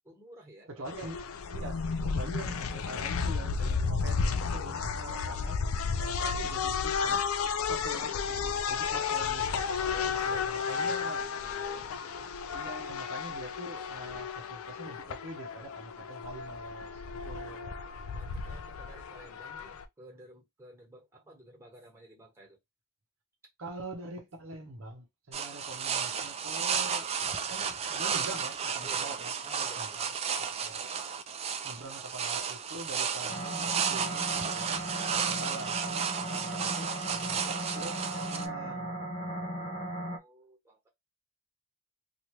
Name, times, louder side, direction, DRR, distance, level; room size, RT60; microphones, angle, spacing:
voice 1, 0.0-1.1 8.6-9.2 9.9-11.9 18.1-22.6 28.8-29.1 29.4-30.1 40.0-40.9, right 1 dB, 15° right, 1.3 m, -52 dB
voice 2, 0.7-1.2 1.5-5.6 6.0-7.3 7.7-8.1 8.7-11.2 12.5-17.7 23.6-27.1 27.5-29.3 29.8-30.1 30.6-30.9 31.6-34.8 35.1-39.0, right 2 dB, 65° right, 0.7 m, -44 dB
sound 1, 0.9-19.8, left 5 dB, 80° left, 0.4 m, -33 dB
sound 2, 25.3-38.5, right 6 dB, 30° right, 0.4 m, -33 dB
sound 3, 33.3-40.2, right 1 dB, 30° left, 0.5 m, -37 dB
3.0 x 2.4 x 3.0 m
head